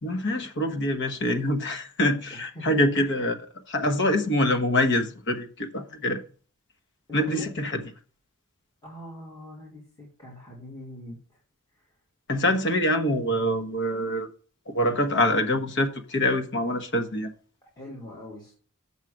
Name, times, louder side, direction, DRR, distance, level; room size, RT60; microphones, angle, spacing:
voice 1, 0.0-6.2 7.1-7.8 12.3-14.3 14.7-17.3, left 1 dB, 55° left, 1.2 m, -25 dB
voice 2, 2.3-2.8 7.1-7.5 8.8-11.4 11.8-11.9 17.8-18.5, left 1 dB, 20° left, 2.3 m, -42 dB
7.3 x 5.6 x 6.3 m
head